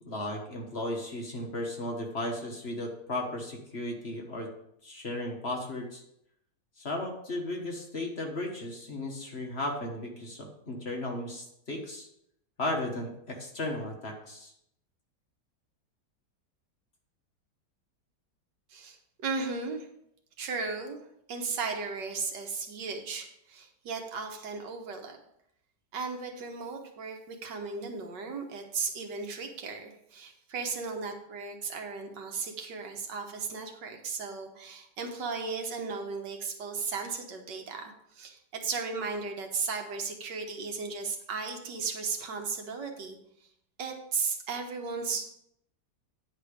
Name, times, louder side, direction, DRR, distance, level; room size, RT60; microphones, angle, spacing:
voice 1, 0.0-4.5 4.8-6.0 6.8-12.1 12.6-14.5, left 1 dB, 40° left, 1 dB, 1.4 m, -35 dB
voice 2, 18.7-19.9 20.4-21.0 21.3-25.2 25.9-43.2 43.8-45.2, right 4 dB, 80° right, 4 dB, 1.8 m, -35 dB
9.6 x 4.9 x 5.0 m, 0.75 s
omnidirectional pair, 1.9 m